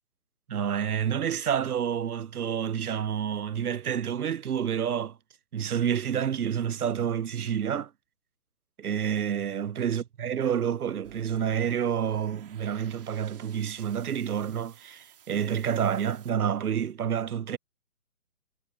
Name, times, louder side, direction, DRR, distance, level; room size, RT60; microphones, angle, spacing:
voice 1, 0.5-5.2 5.5-7.9 8.8-17.6, right 8 dB, 85° right, 0.7 m, -29 dB
sound 1, 11.0-16.3, right 10 dB, 40° right, 3.4 m, -55 dB
hypercardioid pair, 155°, 43 cm